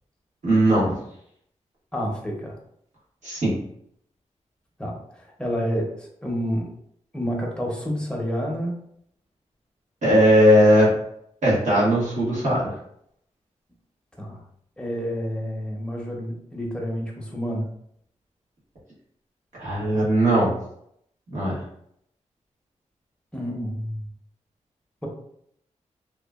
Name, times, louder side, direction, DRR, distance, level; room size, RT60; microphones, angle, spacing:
voice 1, 0.4-1.0 3.2-3.6 10.0-10.9 11.4-12.7 19.6-20.5 21.3-21.6, equal, 70° right, -7 dB, 1.4 m, -18 dB
voice 2, 1.9-2.6 4.8-6.7 7.1-8.7 14.2-14.4 14.8-17.7 23.3-24.1, equal, 5° left, -2 dB, 0.7 m, -29 dB
2.9 x 2.2 x 2.3 m, 0.72 s
cardioid pair, 80°, 13 cm